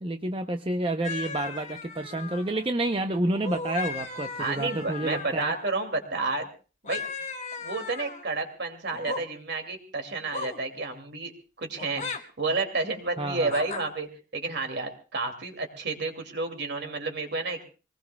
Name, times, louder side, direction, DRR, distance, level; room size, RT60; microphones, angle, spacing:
voice 1, 0.0-5.5 13.2-13.5, right 2 dB, 25° right, 6 dB, 0.7 m, -29 dB
sound 1, 1.0-2.7 3.3-5.7 6.8-8.3 8.9-9.2 10.3-10.6 11.8-12.2 13.5-13.8, left 4 dB, 35° left, 1.5 m, -36 dB
voice 2, 4.4-6.5 6.8-7.0 7.6-11.3 11.6-17.6, right 3 dB, 55° right, 5 dB, 2.5 m, -31 dB
24.5 x 19.5 x 2.3 m, 0.35 s
head